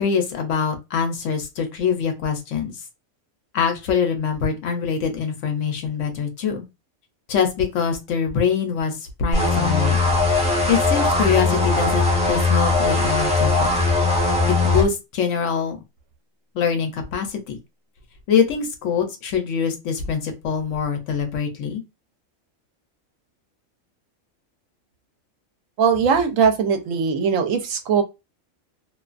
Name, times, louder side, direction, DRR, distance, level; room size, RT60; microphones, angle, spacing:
voice 1, 0.0-2.7 3.5-6.7 7.3-10.0 10.7-13.5 14.5-15.8 16.5-17.6 18.3-21.8, left 6 dB, 70° left, 0.9 m, -24 dB
sound 1, 9.3-14.8, left 3 dB, 10° right, 0.4 m, -19 dB
voice 2, 25.8-28.0, right 6 dB, 75° right, 0.9 m, -20 dB
2.5 x 2.2 x 2.4 m
omnidirectional pair, 1.4 m